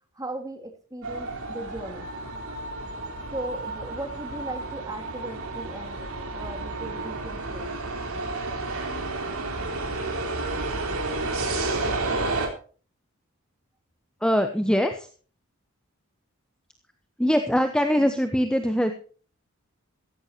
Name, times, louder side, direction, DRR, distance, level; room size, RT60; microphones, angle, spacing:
voice 1, 0.1-2.1 3.3-6.0 6.3-7.7, right 1 dB, 15° right, 4 dB, 2.7 m, -37 dB
sound 1, 1.0-12.5, right 2 dB, 80° right, 4.2 m, -31 dB
voice 2, 14.2-15.1 17.2-18.9, equal, 5° left, 7 dB, 1.0 m, -22 dB
16.0 x 15.5 x 2.9 m, 0.40 s
head